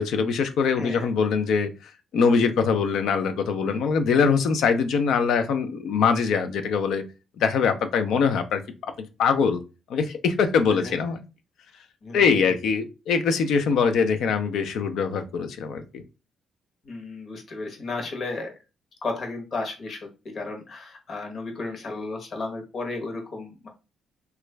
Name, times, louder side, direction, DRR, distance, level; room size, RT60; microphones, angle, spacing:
voice 1, 0.0-7.0 7.4-8.9 9.2-9.6 9.9-11.2 12.1-16.0, left 5 dB, 75° left, 7 dB, 0.5 m, -23 dB
voice 2, 0.8-1.1 10.7-11.0 12.0-12.4 16.8-18.5 19.0-20.0 20.3-23.7, left 3 dB, 50° left, 2 dB, 1.0 m, -33 dB
3.1 x 2.4 x 3.2 m, 0.30 s
cardioid pair, 90°, 0 cm